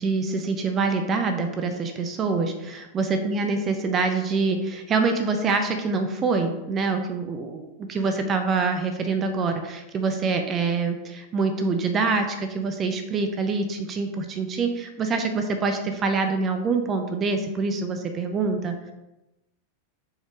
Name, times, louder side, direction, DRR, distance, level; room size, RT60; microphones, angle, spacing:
voice 1, 0.0-18.7, right 4 dB, 25° right, 6 dB, 0.5 m, -25 dB
4.7 x 2.1 x 4.7 m, 0.96 s
figure-of-eight pair, 90°, 0 cm